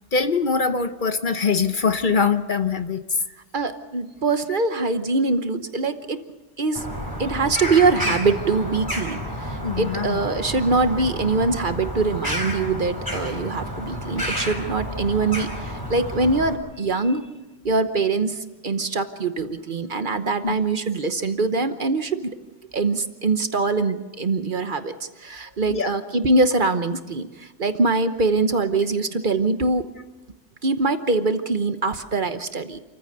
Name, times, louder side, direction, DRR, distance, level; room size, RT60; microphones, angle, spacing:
voice 1, 0.1-3.2 9.6-10.2 20.4-20.6 25.7-26.0, left 5 dB, 50° left, 9 dB, 1.0 m, -23 dB
voice 2, 3.5-6.2 6.6-6.9 7.2-17.3 17.6-22.3 22.7-29.9 30.6-32.8, right 3 dB, 50° right, 10 dB, 1.2 m, -23 dB
Bird vocalization bird call bird song, 6.7-16.5, equal, 20° left, 4.6 m, -30 dB
28.0 x 14.5 x 6.8 m, 1.1 s
omnidirectional pair, 1.2 m